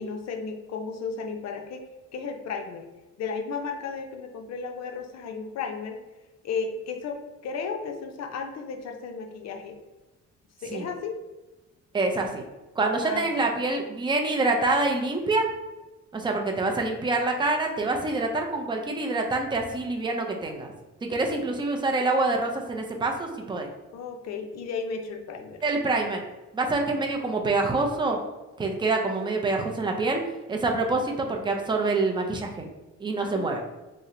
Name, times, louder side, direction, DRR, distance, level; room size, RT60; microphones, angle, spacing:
voice 1, 0.0-1.8 2.1-2.8 3.2-6.0 6.4-9.8 10.6-11.2 12.9-13.2 21.1-21.4 23.9-25.6 33.2-33.6, left 5 dB, 60° left, 4 dB, 0.5 m, -34 dB
voice 2, 11.9-12.4 12.8-15.5 16.1-20.7 21.0-23.7 25.6-26.2 26.5-28.2 28.6-30.2 30.5-32.7 33.0-33.6, right 3 dB, 15° right, 2 dB, 0.5 m, -26 dB
2.8 x 2.0 x 3.7 m, 1.1 s
cardioid pair, 90°, 30 cm